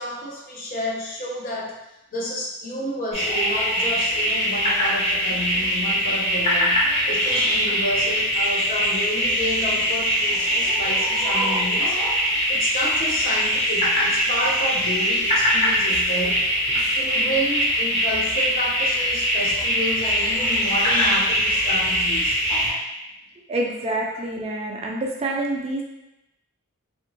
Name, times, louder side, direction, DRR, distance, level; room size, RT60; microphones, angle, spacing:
voice 1, 0.0-1.8 2.1-12.0 12.5-16.5 16.9-22.4, equal, 40° left, -2 dB, 0.6 m, -30 dB
sound 1, 3.1-22.7, equal, 25° left, 1.3 m, -22 dB
voice 2, 23.5-25.8, right 2 dB, 30° right, -1 dB, 0.3 m, -27 dB
2.8 x 2.6 x 2.7 m, 0.92 s
head